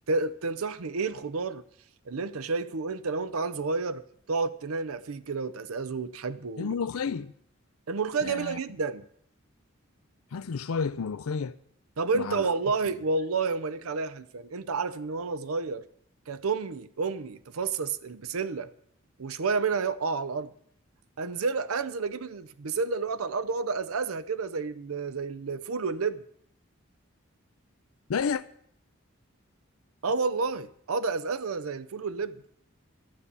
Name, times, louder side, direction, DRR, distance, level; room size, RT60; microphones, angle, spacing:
voice 1, 0.1-1.6 2.1-4.0 4.3-6.7 7.9-9.0 12.0-15.8 16.3-18.7 19.2-20.5 21.2-26.2 30.0-32.3, right 4 dB, 85° right, 0.6 m, -30 dB
voice 2, 6.6-7.3 8.2-8.6 10.3-11.6 12.1-12.5 28.1-28.4, left 5 dB, 90° left, 0.5 m, -31 dB
12.5 x 6.9 x 9.8 m
head